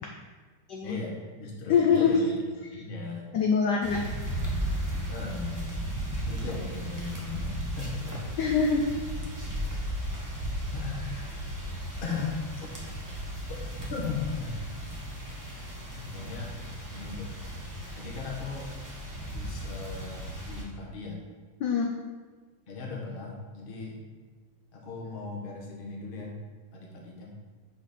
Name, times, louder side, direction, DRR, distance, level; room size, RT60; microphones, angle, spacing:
voice 1, 0.8-3.3 5.1-5.9 6.3-8.3 10.7-11.3 12.0-12.9 13.5-13.6 13.9-14.7 15.9-16.6 16.9-17.3 18.0-18.9 19.2-21.2 22.7-24.0 24.7-26.3 26.7-27.3, left 4 dB, 35° left, -2 dB, 1.0 m, -38 dB
voice 2, 1.7-2.2 3.3-4.0 8.4-8.9 21.6-21.9, left 6 dB, 75° left, 1 dB, 1.0 m, -23 dB
sound 1, 3.8-20.6, equal, 15° right, 0.8 m, -35 dB
5.8 x 5.7 x 4.2 m, 1.4 s
omnidirectional pair, 2.4 m